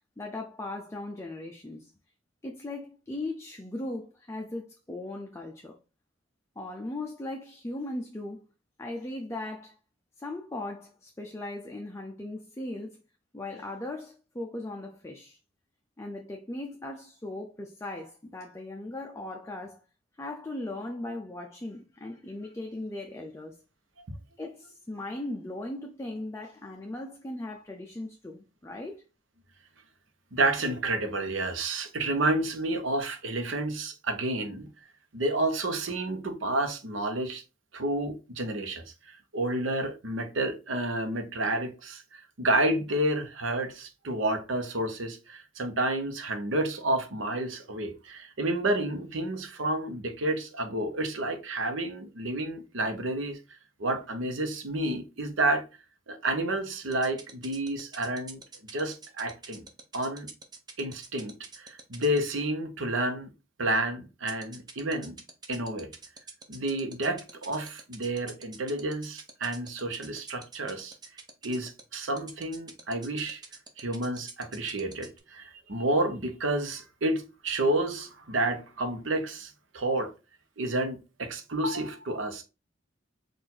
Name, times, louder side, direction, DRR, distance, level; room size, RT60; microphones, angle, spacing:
voice 1, 0.2-1.9 2.4-5.8 6.6-8.4 8.8-9.8 10.2-13.0 13.3-15.4 16.0-19.8 20.2-23.6 24.4-29.1, left 2 dB, 15° left, 0.4 m, -38 dB
voice 2, 30.3-34.7 35.1-37.4 37.7-53.4 53.8-55.6 56.1-58.4 58.7-59.6 59.9-60.3 60.8-63.3 63.6-65.2 65.5-65.9 66.5-70.9 71.4-73.4 73.8-80.1 80.6-82.4, right 1 dB, 85° right, 0.9 m, -30 dB
sound 1, 56.9-62.2 64.3-75.2, right 4 dB, 20° right, 0.7 m, -45 dB
4.5 x 2.5 x 3.8 m
head